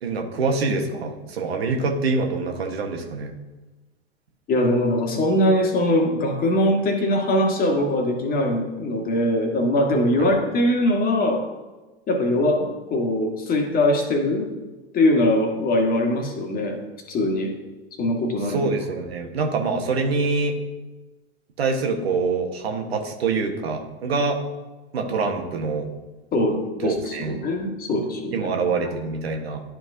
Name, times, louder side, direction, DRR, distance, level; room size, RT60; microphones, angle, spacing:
voice 1, 0.0-3.3 10.2-10.3 18.4-20.6 21.6-24.4 24.9-25.9 26.8-27.4 28.3-29.6, right 4 dB, 70° right, 3 dB, 1.2 m, -25 dB
voice 2, 4.5-11.4 12.1-14.5 14.9-16.8 17.1-17.5 18.0-18.6 26.3-28.5, left 1 dB, 25° left, 2 dB, 1.5 m, -22 dB
11.5 x 4.6 x 2.6 m, 1.2 s
figure-of-eight pair, 90°, 32 cm